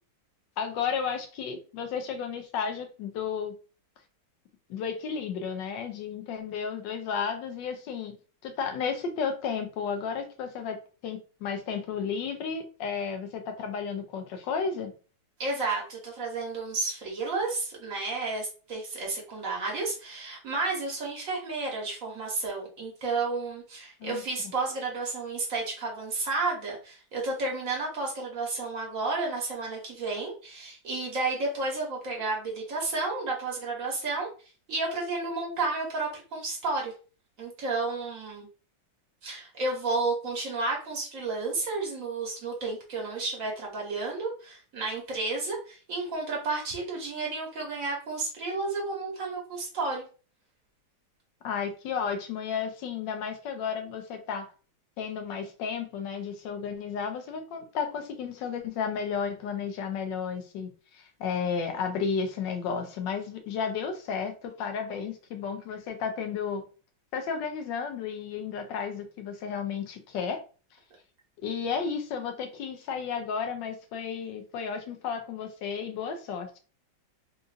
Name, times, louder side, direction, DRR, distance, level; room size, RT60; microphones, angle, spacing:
voice 1, 0.6-3.5 4.7-8.2 8.4-10.8 11.0-14.9 24.0-24.2 51.4-54.5 55.0-66.6 67.1-70.4 71.4-76.6, left 6 dB, 70° left, 5 dB, 1.2 m, -33 dB
voice 2, 15.4-34.3 34.7-36.9 37.4-38.5 39.2-50.0, right 3 dB, 50° right, -1 dB, 1.2 m, -32 dB
3.9 x 2.5 x 2.4 m, 0.36 s
omnidirectional pair, 2.2 m